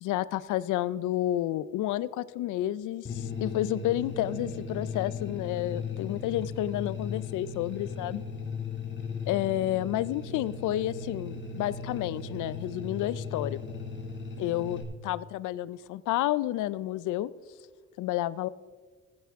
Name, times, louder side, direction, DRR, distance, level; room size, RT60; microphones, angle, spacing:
voice 1, 0.0-8.2 9.3-13.6 14.4-14.8 15.0-17.3 18.0-18.5, left 14 dB, 85° left, 18 dB, 0.5 m, -30 dB
sound 1, 3.1-14.8, left 4 dB, 40° left, 2.2 m, -37 dB
15.5 x 9.6 x 3.6 m, 1.4 s
cardioid pair, 90°, 30 cm